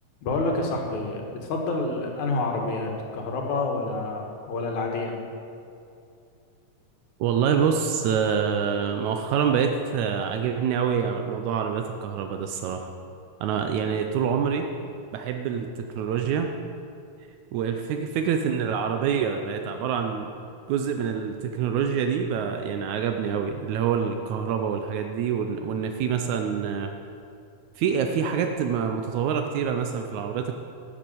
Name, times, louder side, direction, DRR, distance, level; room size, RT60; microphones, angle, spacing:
voice 1, 0.2-5.1, left 2 dB, 80° left, 1 dB, 2.9 m, -28 dB
voice 2, 7.2-12.9 13.4-14.7 15.1-15.7 16.0-16.5 17.5-20.3 20.7-26.9 27.8-30.5, right 7 dB, 80° right, 5 dB, 2.1 m, -26 dB
11.5 x 7.5 x 7.8 m, 2.5 s
omnidirectional pair, 3.3 m